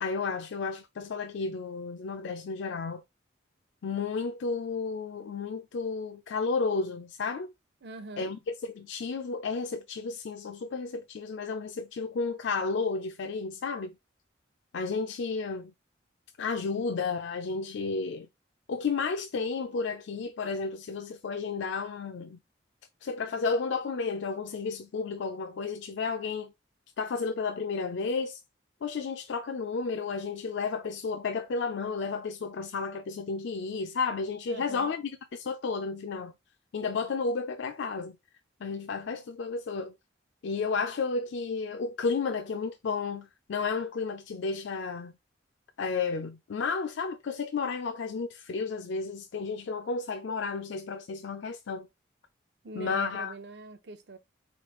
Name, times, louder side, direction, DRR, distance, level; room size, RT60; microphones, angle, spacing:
voice 1, 0.0-3.0 3.8-7.5 8.2-14.0 14.7-15.7 16.4-18.3 18.7-22.4 23.0-26.5 27.0-28.4 28.8-36.3 36.7-38.2 38.6-39.9 40.4-45.2 45.8-51.9 52.7-53.3, left 4 dB, 75° left, 0.4 m, -32 dB
voice 2, 7.8-8.3 34.5-34.9 52.6-54.2, right 2 dB, 60° right, 0.6 m, -43 dB
4.1 x 3.2 x 3.0 m
head